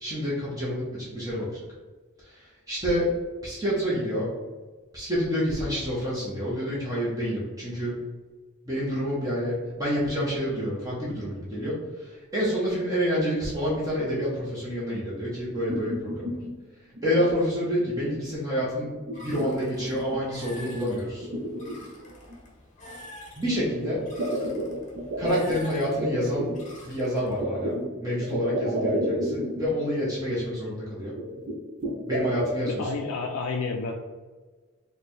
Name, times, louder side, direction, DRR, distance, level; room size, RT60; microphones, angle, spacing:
voice 1, 0.0-1.6 2.2-3.1 3.4-4.3 4.9-7.9 8.7-16.4 17.0-18.9 19.2-21.3 23.4-24.0 25.2-26.5 26.8-27.8 28.0-31.1 32.1-32.9, equal, 15° right, -7 dB, 0.7 m, -28 dB
sound 1, 15.3-16.5 17.0-17.3 17.8-18.2 18.6-20.2 20.6-20.7 21.1-22.4 23.5-26.6 27.4-29.8 30.1-30.2 30.5-30.6 31.2-32.6, equal, 50° right, 0.5 m, -31 dB
swing squeak, 19.1-27.4, left 1 dB, 35° left, 0.8 m, -47 dB
voice 2, 32.8-33.9, left 4 dB, 90° left, 2 dB, 0.4 m, -30 dB
3.2 x 2.2 x 4.2 m, 1.3 s
head